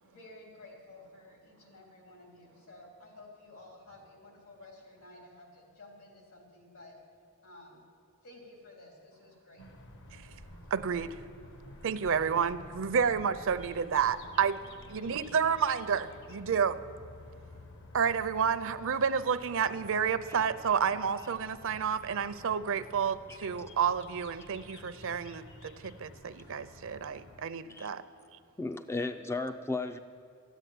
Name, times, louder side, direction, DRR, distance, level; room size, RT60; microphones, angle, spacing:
voice 1, 0.0-7.0 7.4-7.9 8.2-9.6, left 2 dB, 75° left, 0 dB, 3.6 m, -53 dB
sound 1, 9.6-27.5, left 1 dB, 55° left, 1.1 m, -51 dB
voice 2, 10.7-11.1 11.8-14.6 14.9-16.8 17.9-28.0, right 7 dB, 65° right, 13 dB, 0.6 m, -30 dB
voice 3, 28.6-30.0, left 3 dB, 10° left, 9 dB, 0.3 m, -35 dB
13.5 x 9.1 x 9.3 m, 2.5 s
head